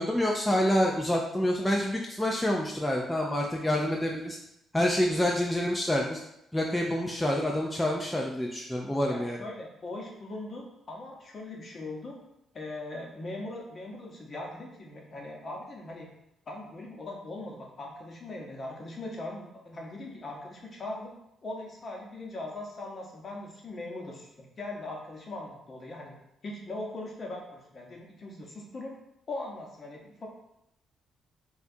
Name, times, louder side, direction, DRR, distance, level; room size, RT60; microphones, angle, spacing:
voice 1, 0.0-4.4 4.7-6.2 6.5-9.4, left 1 dB, 5° left, -1 dB, 0.4 m, -27 dB
voice 2, 9.1-12.2 12.5-16.1 16.5-21.1 21.4-26.1 26.4-28.9 29.3-30.3, left 2 dB, 40° left, -1 dB, 0.8 m, -40 dB
4.3 x 2.3 x 2.7 m, 0.83 s
cardioid pair, 105°, 0 cm